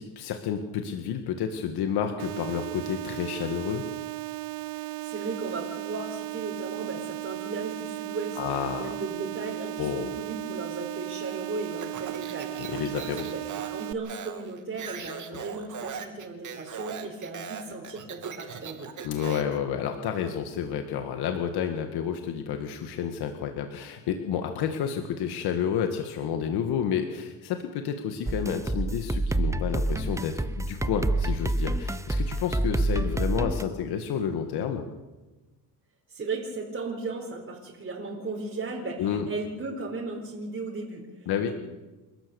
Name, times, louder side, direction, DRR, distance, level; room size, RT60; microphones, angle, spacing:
voice 1, 0.0-3.8 8.4-9.0 9.8-10.2 12.6-13.3 19.0-34.9 39.0-39.3 41.3-41.5, left 8 dB, 75° left, 5 dB, 1.9 m, -30 dB
sound 1, 2.2-13.9, right 19 dB, 80° right, 0.9 m, -36 dB
voice 2, 4.7-18.9 36.1-41.5, right 3 dB, 30° right, -2 dB, 4.7 m, -36 dB
Speech, 11.8-19.6, right 7 dB, 50° right, 2.9 m, -40 dB
sound 2, 28.3-33.6, right 2 dB, 10° right, 0.7 m, -27 dB
29.5 x 13.0 x 7.1 m, 1.2 s
cardioid pair, 105°, 39 cm